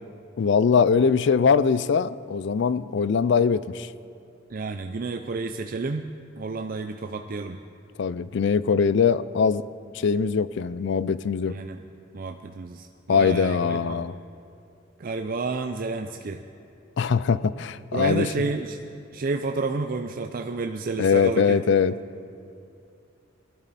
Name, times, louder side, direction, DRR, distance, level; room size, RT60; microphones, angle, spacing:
voice 1, 0.4-3.9 8.0-9.6 9.9-11.6 13.1-14.1 17.0-18.3 21.0-21.9, left 6 dB, 60° left, 17 dB, 0.4 m, -22 dB
voice 2, 4.5-7.6 11.5-11.8 12.1-14.0 15.0-16.4 17.9-18.8 19.1-21.6, right 3 dB, 45° right, 5 dB, 0.4 m, -30 dB
19.5 x 12.5 x 4.1 m, 2.5 s
head